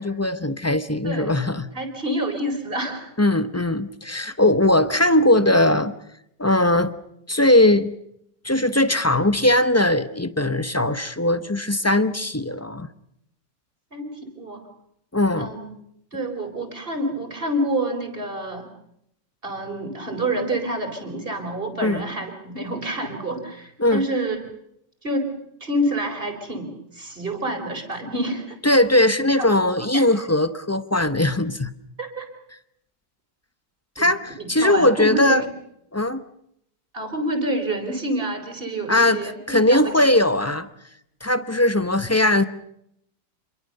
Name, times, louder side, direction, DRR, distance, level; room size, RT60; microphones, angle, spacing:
voice 1, 0.0-1.7 3.2-5.9 6.4-6.9 7.3-7.9 8.4-12.9 15.1-15.5 21.8-22.0 23.8-24.0 28.6-31.7 34.0-35.4 35.9-36.2 38.9-40.7 41.2-42.4, left 1 dB, 20° left, 13 dB, 0.4 m, -19 dB
voice 2, 1.0-1.4 1.7-3.1 13.9-14.7 15.4-15.7 16.1-18.7 19.4-24.4 25.0-25.3 25.6-28.6 29.4-30.0 32.0-32.3 34.0-34.1 34.4-35.4 36.9-40.1, right 1 dB, 30° right, 5 dB, 4.7 m, -28 dB
27.5 x 22.5 x 6.7 m, 0.75 s
omnidirectional pair, 1.9 m